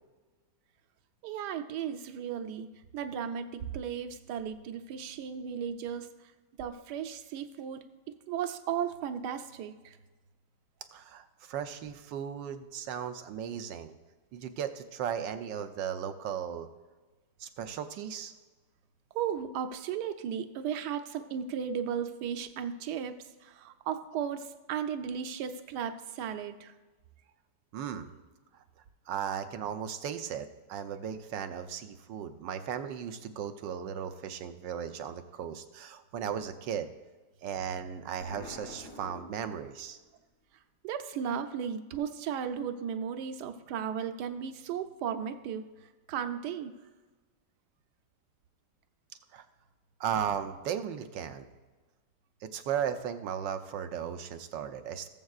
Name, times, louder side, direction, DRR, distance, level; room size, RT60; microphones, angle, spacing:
voice 1, 1.2-6.3 6.6-7.9 8.3-10.0 19.1-26.7 40.8-45.6 46.1-46.7, right 8 dB, 75° right, 8 dB, 1.2 m, -35 dB
voice 2, 10.9-13.9 14.3-16.7 17.4-18.3 27.7-28.2 28.5-28.6 29.1-36.9 37.4-40.0 49.3-49.4 50.0-51.5 52.4-55.1, right 8 dB, 90° right, 8 dB, 1.4 m, -36 dB
Explosion, 38.2-40.0, left 2 dB, 50° left, 1.4 m, -47 dB
18.5 x 7.4 x 2.4 m, 1.3 s
omnidirectional pair, 1.9 m